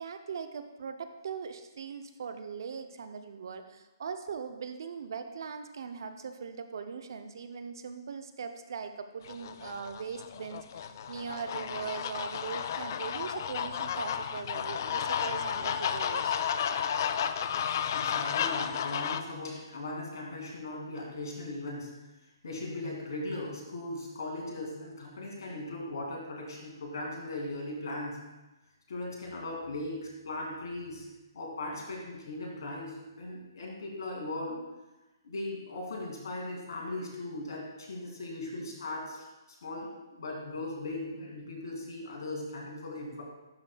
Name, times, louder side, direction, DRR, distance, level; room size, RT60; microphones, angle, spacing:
voice 1, 0.0-16.4, right 6 dB, 60° right, 8 dB, 0.5 m, -40 dB
sound 1, 9.2-19.2, left 8 dB, 50° left, 0.3 m, -32 dB
voice 2, 17.9-21.9 22.4-28.2 28.9-30.0 30.2-31.0 31.3-34.6 35.2-39.3 39.6-43.2, left 2 dB, 65° left, -2 dB, 2.3 m, -38 dB
11.0 x 5.0 x 2.3 m, 1.1 s
hypercardioid pair, 150°, 2 cm